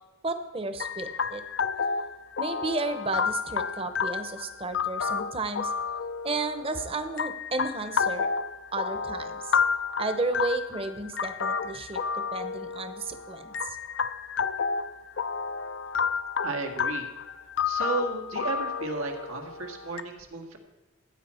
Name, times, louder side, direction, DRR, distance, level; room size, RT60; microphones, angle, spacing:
voice 1, 0.2-1.4 2.4-5.7 6.2-8.3 8.7-9.6 10.0-12.0 12.3-13.8, right 2 dB, 25° right, 8 dB, 0.9 m, -32 dB
sound 1, 0.8-20.0, left 6 dB, 60° left, 0.5 m, -31 dB
voice 2, 16.4-17.1 17.7-20.6, right 3 dB, 90° right, 2 dB, 1.8 m, -33 dB
15.0 x 8.8 x 4.4 m, 1.2 s
head